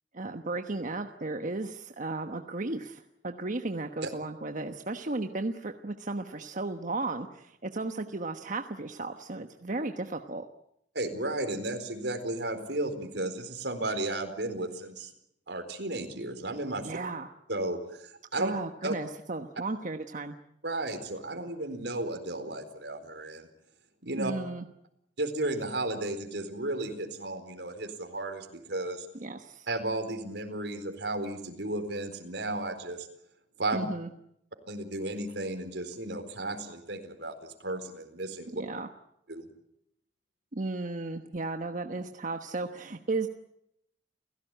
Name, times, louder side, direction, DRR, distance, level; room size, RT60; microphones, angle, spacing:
voice 1, 0.1-10.5 16.8-17.3 18.4-20.4 24.2-24.7 29.2-29.7 33.7-34.1 38.5-38.9 40.5-43.3, right 2 dB, 50° right, 6 dB, 1.2 m, -35 dB
voice 2, 10.9-15.1 15.5-16.9 17.5-18.5 18.8-18.9 20.6-23.5 24.0-24.3 25.2-29.1 29.7-33.1 33.6-33.9 34.7-38.6 39.3-39.5, right 2 dB, 80° right, 7 dB, 4.3 m, -34 dB
30.0 x 16.5 x 9.2 m, 0.77 s
head